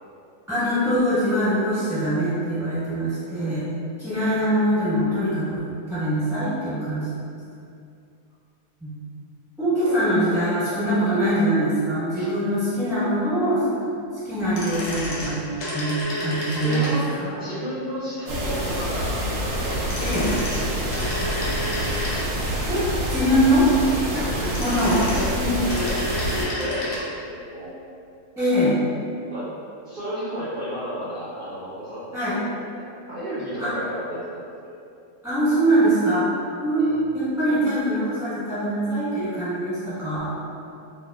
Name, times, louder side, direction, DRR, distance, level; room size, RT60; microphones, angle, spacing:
voice 1, 0.5-3.7 4.0-7.1 8.8-8.9 9.6-13.6 14.2-17.4 20.0-20.3 22.7-22.8 23.1-23.7 24.6-25.0 25.3-25.6 28.4-28.8 32.1-32.4 33.6-33.7 35.2-36.2 36.6-40.3, equal, ahead, -15 dB, 1.1 m, -23 dB
sound 1, 14.4-17.3 19.7-22.6 24.2-27.1 27.3-27.4, equal, 65° left, 0.7 m, -31 dB
voice 2, 16.6-17.1 17.4-21.1 24.4-25.9 26.1-27.7 29.3-29.5 29.8-32.5 32.7-34.7 36.8-37.0, equal, 50° right, -13 dB, 0.6 m, -33 dB
sound 2, 18.3-26.5, equal, 90° right, 1.1 m, -27 dB
Bowed string instrument, 24.1-27.8, left 1 dB, 15° left, 0.5 m, -39 dB
2.4 x 2.3 x 2.2 m, 2.5 s
omnidirectional pair, 1.6 m